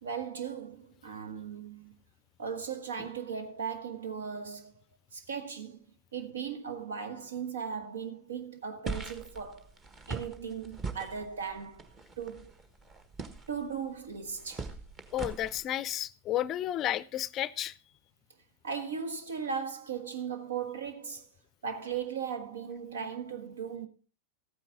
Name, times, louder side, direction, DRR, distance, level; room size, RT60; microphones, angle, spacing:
voice 1, 0.0-1.9 2.4-4.7 5.1-5.9 6.1-9.7 10.1-11.9 12.2-12.5 13.5-14.7 18.6-21.3 21.6-23.9, right 6 dB, 65° right, 1.3 m, -37 dB
sound 1, 8.8-15.6, right 4 dB, 25° right, 1.4 m, -42 dB
voice 2, 15.1-17.7, left 12 dB, 30° left, 0.5 m, -32 dB
14.5 x 9.2 x 3.7 m
figure-of-eight pair, 90°, 0 cm